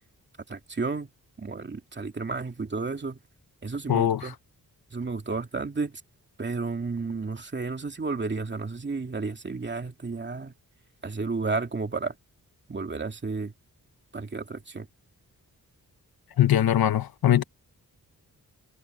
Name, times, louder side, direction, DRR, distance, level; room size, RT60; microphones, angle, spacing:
voice 1, 0.5-1.1 1.4-3.2 3.6-4.3 4.9-6.0 6.4-10.5 11.0-12.1 12.7-13.5 14.1-14.9, right 4 dB, 30° right, 2.5 m, -32 dB
voice 2, 3.9-4.3 16.4-17.4, left 11 dB, 85° left, 1.0 m, -21 dB
wide cardioid pair, 155°, 35 cm